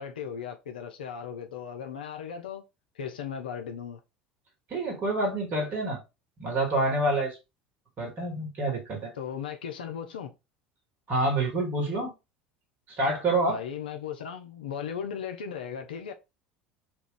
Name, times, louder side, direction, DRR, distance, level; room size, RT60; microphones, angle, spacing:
voice 1, 0.0-2.6 2.9-4.0 9.2-10.3 13.5-16.1, left 7 dB, 70° left, 0.4 m, -37 dB
voice 2, 4.7-6.0 6.4-7.4 8.0-9.1 11.1-12.1 12.9-13.6, right 2 dB, 35° right, 1.2 m, -27 dB
2.3 x 2.3 x 3.6 m
figure-of-eight pair, 70°, 5 cm